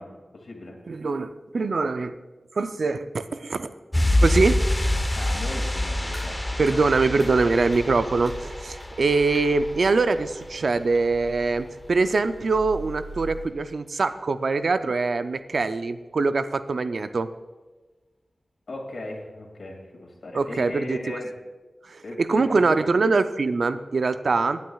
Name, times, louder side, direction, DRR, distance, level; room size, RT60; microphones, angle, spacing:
voice 1, 0.0-0.8 5.2-6.8 7.4-7.7 14.9-15.0 18.7-21.3 22.0-22.9, left 2 dB, 70° left, 1 dB, 2.3 m, -38 dB
voice 2, 0.9-2.2 2.5-3.7 4.2-4.6 6.6-17.3 20.3-21.2 21.8-24.6, right 3 dB, 75° right, 11 dB, 0.4 m, -23 dB
sound 1, 3.9-10.4 10.7-10.8, left 1 dB, 15° left, 0.9 m, -26 dB
sound 2, 6.1-13.5, right 2 dB, 25° right, 3.9 m, -42 dB
17.5 x 9.4 x 2.3 m, 1.3 s
wide cardioid pair, 75°, 0 cm